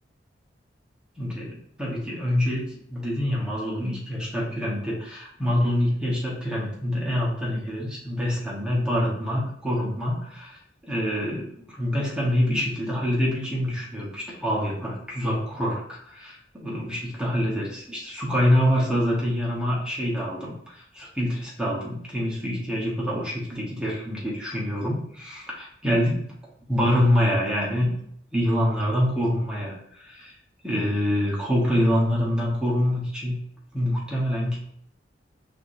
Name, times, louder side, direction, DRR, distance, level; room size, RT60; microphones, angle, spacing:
voice 1, 1.2-2.6 2.9-10.6 10.9-26.3 26.7-27.9 28.3-30.3 30.6-33.4 33.7-34.6, equal, 5° right, -5 dB, 1.1 m, -26 dB
4.9 x 3.6 x 2.7 m, 0.67 s
head